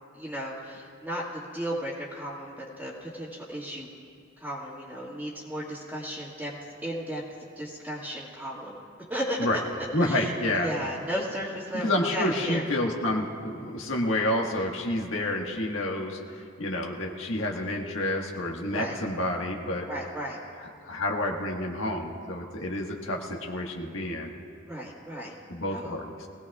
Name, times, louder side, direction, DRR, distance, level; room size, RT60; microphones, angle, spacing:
voice 1, 0.1-3.9 4.4-6.5 6.8-7.2 7.6-8.8 9.1-9.6 10.0-12.6 18.7-19.0 19.9-20.4 24.7-25.3 25.7-25.9, equal, 10° right, -9 dB, 1.8 m, -34 dB
voice 2, 9.9-10.7 11.7-19.9 20.8-24.3 25.5-26.3, left 1 dB, 85° left, 0 dB, 1.5 m, -29 dB
23.0 x 17.5 x 2.4 m, 2.3 s
head